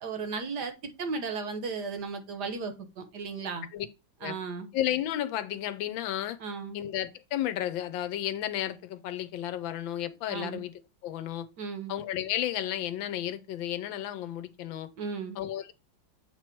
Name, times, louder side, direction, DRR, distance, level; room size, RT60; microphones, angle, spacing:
voice 1, 0.0-0.7 1.0-3.7 4.2-4.7 6.4-6.8 10.3-10.6 11.6-11.9 15.0-15.4, right 4 dB, 60° right, 1.3 m, -35 dB
voice 2, 4.7-6.4 6.7-10.7 11.0-11.5 11.9-14.9 15.4-15.7, left 12 dB, 75° left, 1.3 m, -32 dB
7.5 x 3.0 x 4.4 m
omnidirectional pair, 2.2 m